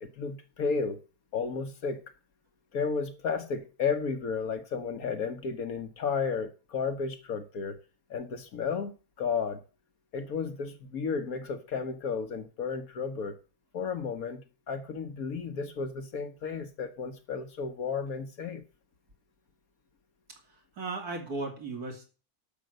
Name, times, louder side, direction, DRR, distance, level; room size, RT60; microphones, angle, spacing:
voice 1, 0.0-1.0 1.3-2.0 2.7-7.8 8.1-8.9 9.2-9.6 10.1-13.4 13.7-18.6, left 5 dB, 70° left, 1.6 m, -33 dB
voice 2, 20.5-22.0, right 3 dB, 90° right, 3.4 m, -36 dB
12.0 x 6.5 x 7.8 m
omnidirectional pair, 1.6 m